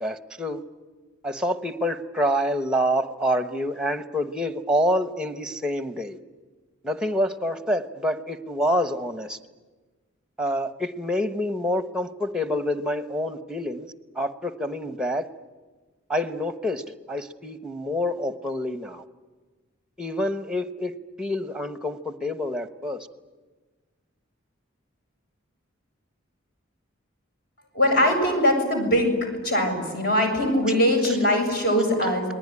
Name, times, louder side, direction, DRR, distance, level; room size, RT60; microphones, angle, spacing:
voice 1, 0.0-0.6 1.2-6.2 6.8-9.4 10.4-13.9 14.1-15.3 16.1-19.0 20.0-23.1, equal, 5° right, 9 dB, 1.1 m, -27 dB
voice 2, 27.7-29.2 29.4-32.3, equal, 50° left, 3 dB, 7.3 m, -21 dB
28.5 x 20.5 x 9.8 m, 1.3 s
head